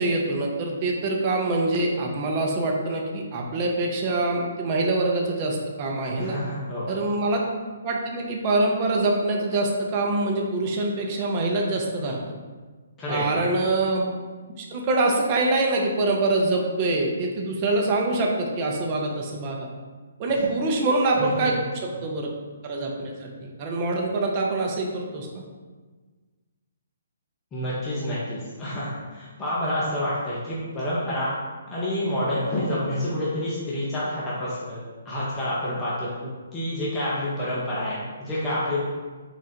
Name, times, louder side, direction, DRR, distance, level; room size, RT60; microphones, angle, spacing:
voice 1, 0.0-6.4 6.9-7.4 7.8-12.2 13.1-14.2 14.6-19.7 20.2-22.3 22.6-25.4, right 2 dB, 35° right, 0 dB, 0.7 m, -25 dB
voice 2, 6.2-6.9 13.0-13.4 21.2-21.5 27.5-31.3 31.7-34.8 35.0-36.1 36.5-38.8, left 1 dB, 20° left, -9 dB, 0.9 m, -28 dB
3.9 x 2.4 x 4.3 m, 1.4 s
figure-of-eight pair, 140°, 0 cm